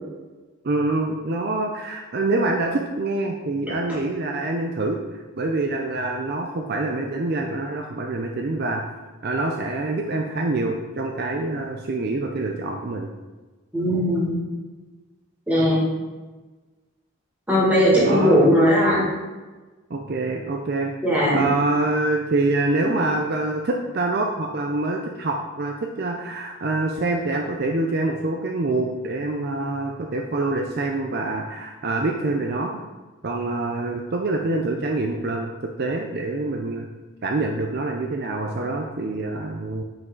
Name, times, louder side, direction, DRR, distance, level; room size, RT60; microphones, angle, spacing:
voice 1, 0.6-5.0 5.4-8.9 9.2-13.1 18.0-18.4 19.9-20.9 21.3-32.7 33.2-36.9 37.2-39.8, right 2 dB, 50° right, 2 dB, 0.5 m, -25 dB
voice 2, 13.7-14.4 15.5-15.8 17.5-19.0 21.0-21.5 22.8-22.9, equal, 5° right, -7 dB, 2.0 m, -18 dB
6.0 x 5.2 x 3.9 m, 1.2 s
head